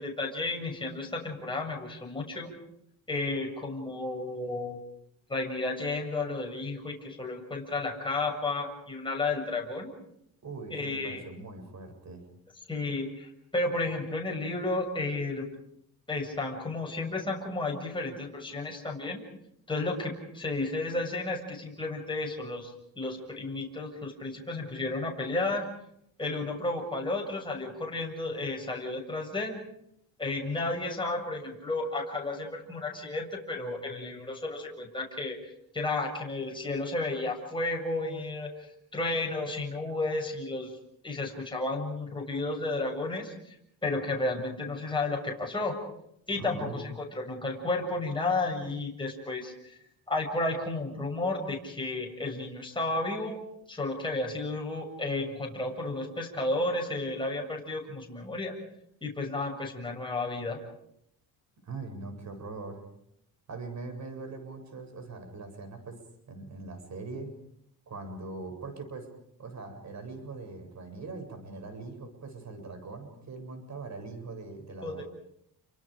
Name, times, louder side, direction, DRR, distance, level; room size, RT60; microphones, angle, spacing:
voice 1, 0.0-2.5 3.1-4.8 5.3-9.9 10.7-11.2 12.7-15.5 16.1-19.2 19.7-25.7 26.2-29.6 30.2-35.4 35.7-40.7 41.0-43.5 43.8-45.8 46.3-49.8 50.1-53.4 53.7-58.6 59.0-60.6 74.8-75.0, left 2 dB, 10° left, 0 dB, 7.3 m, -32 dB
voice 2, 10.4-12.2 46.3-46.8 61.6-62.8 63.5-66.0 66.3-67.4 67.9-69.1 69.4-75.0, right 3 dB, 45° right, 7 dB, 7.7 m, -41 dB
30.0 x 25.0 x 5.2 m, 0.74 s
cardioid pair, 90°, 38 cm